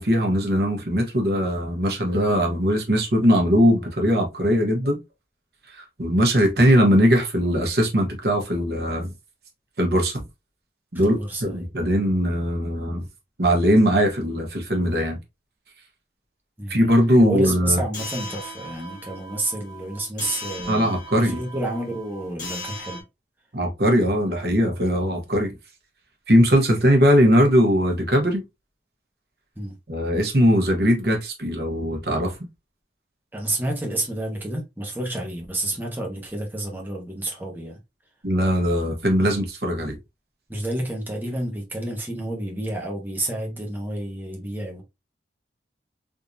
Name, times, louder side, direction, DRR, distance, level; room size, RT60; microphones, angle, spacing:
voice 1, 0.0-5.0 5.7-9.1 9.8-10.2 10.9-13.1 13.4-15.2 16.7-17.8 20.7-21.4 23.5-25.5 26.3-28.4 29.9-32.3 38.2-40.0, equal, 60° right, 1.2 m, -20 dB
voice 2, 11.0-11.7 16.6-16.8 17.2-23.0 29.6-29.8 33.3-37.8 40.5-44.8, right 1 dB, 10° right, 1.0 m, -30 dB
sound 1, 17.9-23.0, left 1 dB, 50° left, 1.4 m, -37 dB
3.6 x 2.9 x 2.6 m
head